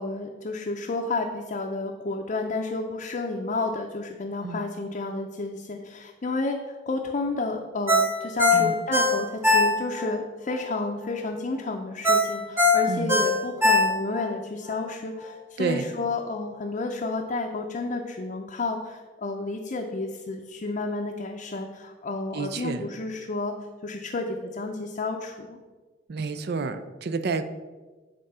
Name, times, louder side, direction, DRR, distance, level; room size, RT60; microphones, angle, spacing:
voice 1, 0.0-23.5 23.8-25.6, left 3 dB, 40° left, 1 dB, 0.6 m, -31 dB
Ringtone, 7.9-10.1 10.5-10.6 12.0-14.3 14.7-14.8, left 2 dB, 15° right, 1.0 m, -21 dB
voice 2, 22.3-22.8 26.1-27.4, right 4 dB, 60° right, 10 dB, 0.5 m, -29 dB
8.6 x 3.7 x 5.5 m, 1.3 s
head